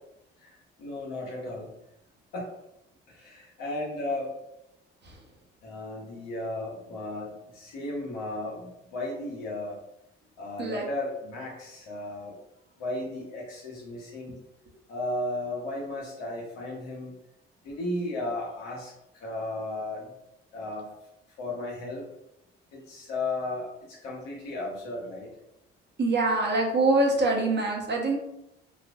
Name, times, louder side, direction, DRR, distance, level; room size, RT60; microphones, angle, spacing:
voice 1, 0.4-1.7 2.3-2.5 3.1-4.3 5.6-9.8 10.4-12.4 12.8-14.4 14.9-17.1 17.6-20.1 20.5-20.9 21.4-22.1 22.7-25.3, left 2 dB, 80° left, -3 dB, 1.2 m, -35 dB
voice 2, 26.0-28.2, right 2 dB, 35° right, -1 dB, 1.0 m, -24 dB
4.1 x 2.4 x 2.4 m, 0.84 s
hypercardioid pair, 50°, 29 cm